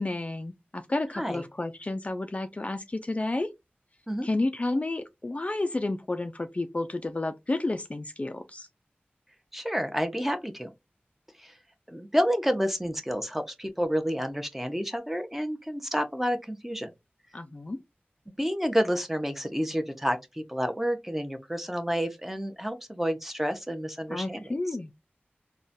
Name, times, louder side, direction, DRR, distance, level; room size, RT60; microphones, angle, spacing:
voice 1, 0.0-3.5 4.2-8.7 17.3-17.8 24.1-24.9, left 2 dB, 35° left, 0.3 m, -31 dB
voice 2, 9.5-10.7 11.4-11.6 11.9-16.9 18.3-24.5, equal, 5° right, 0.6 m, -29 dB
3.8 x 2.2 x 2.5 m
wide cardioid pair, 55°, 4 cm